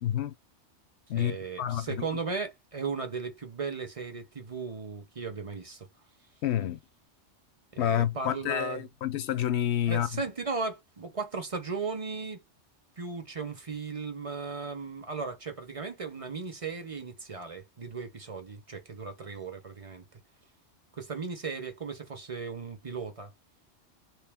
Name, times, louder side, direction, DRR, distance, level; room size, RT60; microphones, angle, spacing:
voice 1, 0.0-0.3 1.1-2.0 6.4-6.8 7.8-10.1, left 11 dB, 65° left, 0.8 m, -29 dB
voice 2, 1.1-5.9 7.7-8.9 9.9-12.4 13.0-20.0 20.9-23.3, right 4 dB, 35° right, 0.7 m, -36 dB
3.1 x 3.0 x 3.5 m
omnidirectional pair, 1.3 m